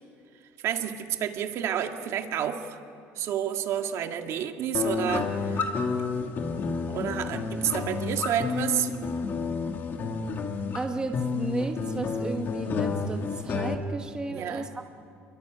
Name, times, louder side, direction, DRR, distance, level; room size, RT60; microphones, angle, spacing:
voice 1, 0.6-2.8 3.2-5.6 6.9-8.9 14.3-14.7, right 9 dB, 55° right, 5 dB, 2.0 m, -30 dB
sound 1, 4.7-13.7, left 4 dB, 35° left, 2.3 m, -30 dB
voice 2, 10.7-14.8, right 3 dB, 15° right, 4 dB, 1.2 m, -33 dB
28.0 x 23.0 x 9.1 m, 2.5 s
cardioid pair, 150°, 6 cm